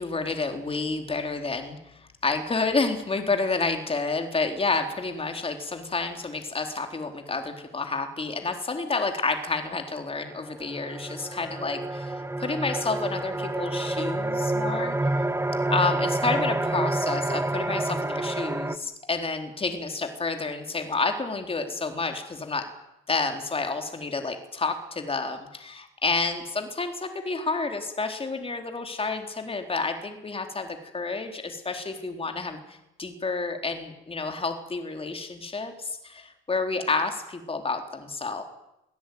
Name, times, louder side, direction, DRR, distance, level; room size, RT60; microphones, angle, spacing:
voice 1, 0.0-15.0 15.7-22.6 23.1-38.4, left 3 dB, 30° left, 5 dB, 3.9 m, -29 dB
sound 1, 10.3-18.8, right 2 dB, 10° right, 1.6 m, -28 dB
25.0 x 16.5 x 9.5 m, 0.87 s
cardioid pair, 90°, 20 cm